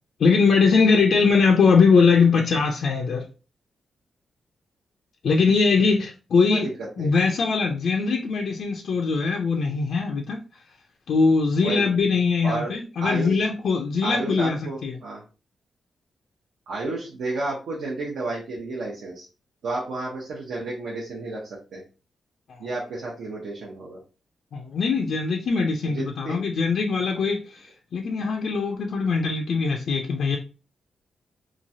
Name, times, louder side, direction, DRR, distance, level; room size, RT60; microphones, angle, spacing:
voice 1, 0.2-3.3 5.2-6.7 7.0-10.4 11.1-14.9 22.5-22.6 24.5-30.4, left 4 dB, 70° left, 1 dB, 0.4 m, -21 dB
voice 2, 11.6-11.9 12.4-12.7 13.0-13.5 14.0-15.2 16.7-19.3 19.6-21.8 22.6-24.0 25.8-26.4, right 2 dB, 80° right, -4 dB, 0.8 m, -31 dB
3.0 x 2.3 x 2.6 m, 0.34 s
cardioid pair, 110°, 0 cm